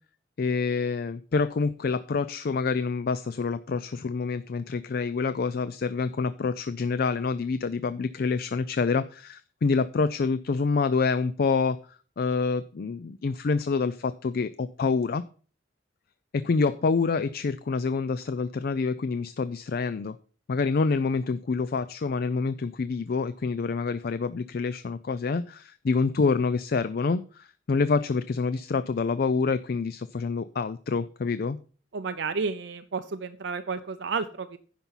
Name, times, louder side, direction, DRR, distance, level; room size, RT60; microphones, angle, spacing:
voice 1, 0.4-15.2 16.3-20.2 20.5-31.6, left 4 dB, 55° left, 14 dB, 0.4 m, -27 dB
voice 2, 31.9-34.6, right 4 dB, 65° right, 9 dB, 0.6 m, -31 dB
10.5 x 5.5 x 5.6 m, 0.40 s
head